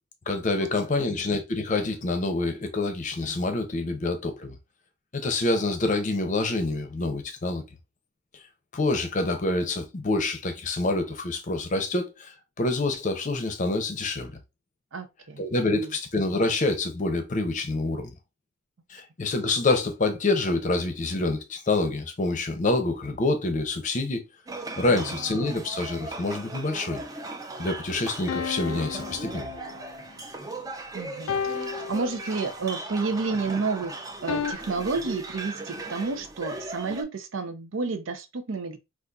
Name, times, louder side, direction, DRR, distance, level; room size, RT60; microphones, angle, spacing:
voice 1, 0.3-4.6 5.1-7.6 8.7-14.3 15.4-18.1 18.9-24.2 24.8-27.0 27.6-29.5, left 2 dB, 40° left, 0.6 m, -27 dB
voice 2, 14.9-15.4 15.8-15.9 24.9-25.2 30.9-38.8, right 4 dB, 80° right, 0.6 m, -31 dB
sound 1, 24.5-37.0, right 2 dB, 20° right, 0.4 m, -38 dB
sound 2, 28.3-30.0 31.3-32.7 34.3-34.5, left 6 dB, 85° left, 0.3 m, -33 dB
3.9 x 2.4 x 2.3 m
head